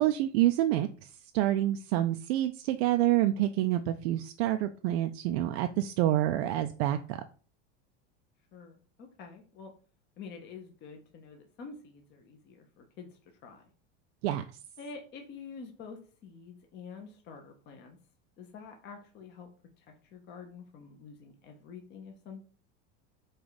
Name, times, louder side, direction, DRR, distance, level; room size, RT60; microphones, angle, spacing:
voice 1, 0.0-7.2 14.2-14.4, right 14 dB, 65° right, 7 dB, 0.5 m, -27 dB
voice 2, 8.5-9.7 10.2-13.7 14.8-18.0 18.4-19.5 19.8-22.4, left 5 dB, 30° left, 3 dB, 0.7 m, -47 dB
5.0 x 2.4 x 4.0 m, 0.39 s
supercardioid pair, 145°, 34 cm